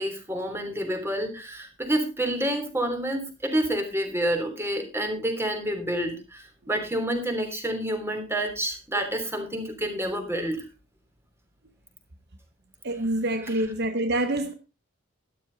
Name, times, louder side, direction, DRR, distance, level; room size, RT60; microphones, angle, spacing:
voice 1, 0.0-10.7, right 1 dB, 10° right, 3.2 m, -28 dB
voice 2, 12.8-14.5, right 1 dB, 55° right, 1.0 m, -26 dB
12.5 x 12.5 x 3.9 m
head